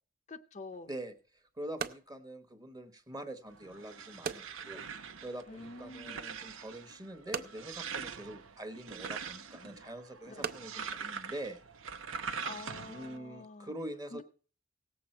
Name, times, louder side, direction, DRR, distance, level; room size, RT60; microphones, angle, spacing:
voice 1, 0.3-0.9 5.5-6.2 10.3-10.5 12.4-13.7 14.1-14.2, left 3 dB, 35° left, 8 dB, 0.5 m, -47 dB
sound 1, 0.7-12.1, right 6 dB, 50° right, 0.6 m, -46 dB
voice 2, 0.9-4.8 5.2-11.6 12.9-14.2, right 1 dB, 20° right, 7 dB, 1.1 m, -44 dB
sound 2, 3.5-13.2, right 6 dB, 90° right, 0.8 m, -43 dB
17.5 x 7.7 x 4.3 m, 0.40 s
head